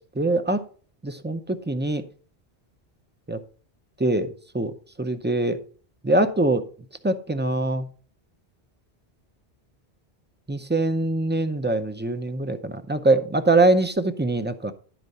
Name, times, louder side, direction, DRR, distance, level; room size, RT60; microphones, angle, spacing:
voice 1, 0.2-0.6 1.0-2.0 3.3-3.4 4.0-5.6 6.0-6.6 7.0-7.9 10.5-14.7, right 2 dB, 15° right, 0.4 m, -23 dB
11.0 x 4.6 x 5.3 m
omnidirectional pair, 1.1 m